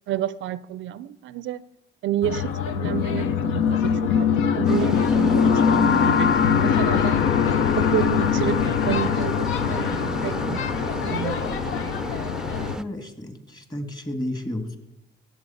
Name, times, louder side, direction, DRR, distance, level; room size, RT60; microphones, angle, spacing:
voice 1, 0.1-1.6 2.0-4.3 4.5-7.3 7.8-10.7 10.9-11.4, right 12 dB, 75° right, 0.4 m, -30 dB
sound 1, 2.2-12.8, left 7 dB, 80° left, 0.7 m, -22 dB
sound 2, 4.7-12.8, right 2 dB, 5° right, 0.5 m, -33 dB
voice 2, 12.8-14.8, left 1 dB, 20° left, 1.9 m, -32 dB
16.5 x 7.5 x 5.7 m
cardioid pair, 90°, 20 cm